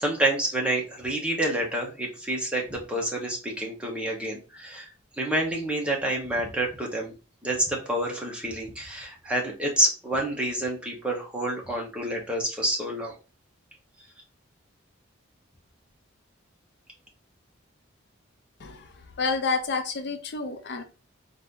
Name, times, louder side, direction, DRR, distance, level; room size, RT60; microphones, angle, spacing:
voice 1, 0.0-4.9 5.2-7.1 7.4-13.1, right 1 dB, 5° right, -1 dB, 0.9 m, -28 dB
voice 2, 19.2-20.8, left 4 dB, 55° left, 6 dB, 0.5 m, -29 dB
4.2 x 2.6 x 3.6 m, 0.32 s
head